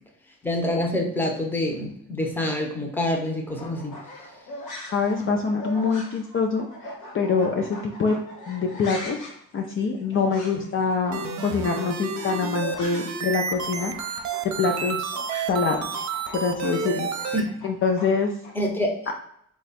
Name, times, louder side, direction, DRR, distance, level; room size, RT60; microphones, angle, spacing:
voice 1, 0.4-3.9 17.3-17.5 18.5-19.1, left 1 dB, 5° left, 1 dB, 0.8 m, -26 dB
sound 1, 3.5-13.2 13.5-18.5, left 1 dB, 85° left, 1.1 m, -41 dB
voice 2, 4.9-8.2 8.5-14.2 14.6-15.2 15.5-16.0 16.3-17.1 17.6-18.3, left 4 dB, 45° left, 2 dB, 0.5 m, -25 dB
sound 2, 11.1-17.4, right 6 dB, 70° right, 0.6 m, -30 dB
3.2 x 2.4 x 4.1 m, 0.69 s
cardioid pair, 90°, 30 cm